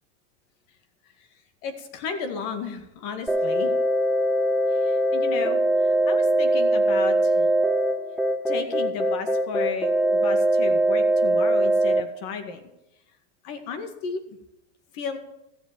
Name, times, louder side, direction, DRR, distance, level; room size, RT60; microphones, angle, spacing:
voice 1, 1.6-3.7 4.7-7.5 8.5-12.6 13.4-14.4 14.9-15.2, left 5 dB, 55° left, 7 dB, 2.1 m, -34 dB
sound 1, 3.3-12.0, right 1 dB, ahead, 0.5 m, -22 dB
13.5 x 7.8 x 7.4 m, 0.89 s
supercardioid pair, 145°, 36 cm